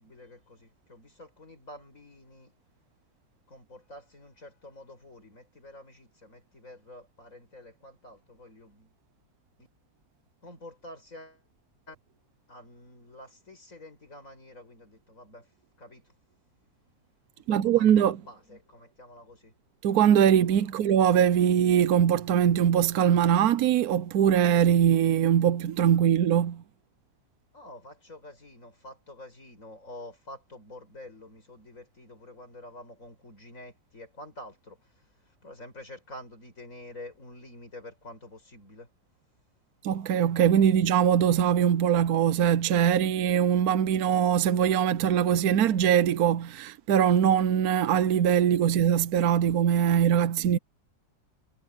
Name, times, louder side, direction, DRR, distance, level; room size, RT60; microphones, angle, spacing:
voice 1, 0.0-2.5 3.5-9.0 9.6-9.7 10.4-11.4 11.9-12.0 12.5-15.5 15.8-16.0 17.5-19.5 27.5-38.9, left 1 dB, 40° left, 6.5 m, -48 dB
voice 2, 17.5-18.2 19.8-26.6 39.8-50.6, right 9 dB, 65° right, 1.0 m, -22 dB
omnidirectional pair, 2.1 m